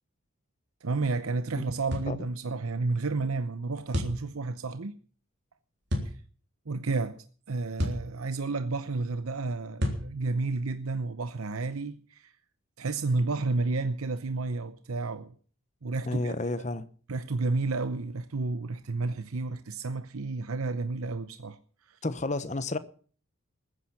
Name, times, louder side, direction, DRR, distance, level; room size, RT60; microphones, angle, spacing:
voice 1, 0.8-4.9 6.7-12.3 12.8-15.3 15.8-16.4 17.1-21.6 21.9-22.0, right 3 dB, 90° right, 0.8 m, -31 dB
sound 1, 1.9-2.1 3.9-4.2 5.9-6.1 7.8-8.1 9.8-10.1, equal, 55° right, 3.7 m, -29 dB
voice 2, 16.1-16.9 22.0-22.8, left 2 dB, 35° left, 1.0 m, -31 dB
20.5 x 10.0 x 5.9 m
head